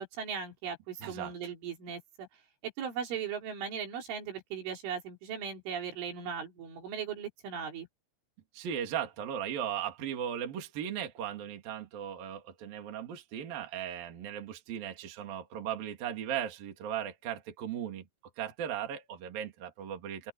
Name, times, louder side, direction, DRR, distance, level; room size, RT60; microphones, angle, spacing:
voice 1, 0.0-2.3 2.8-7.9, right 7 dB, 70° right, 6.2 m, -38 dB
voice 2, 1.0-1.3 8.5-18.0 18.4-20.3, right 9 dB, 50° right, 4.2 m, -37 dB
open air
omnidirectional pair, 5.8 m